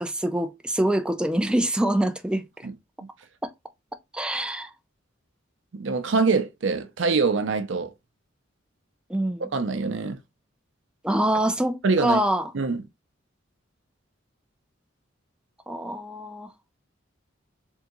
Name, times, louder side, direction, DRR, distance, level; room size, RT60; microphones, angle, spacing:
voice 1, 0.0-2.7 3.4-3.5 4.1-4.7 9.1-9.5 11.0-12.5 15.7-16.5, right 1 dB, 5° right, 0.4 m, -25 dB
voice 2, 5.7-7.9 9.4-10.2 11.8-12.2 12.5-12.8, right 4 dB, 70° right, 0.5 m, -24 dB
3.6 x 3.5 x 2.9 m
head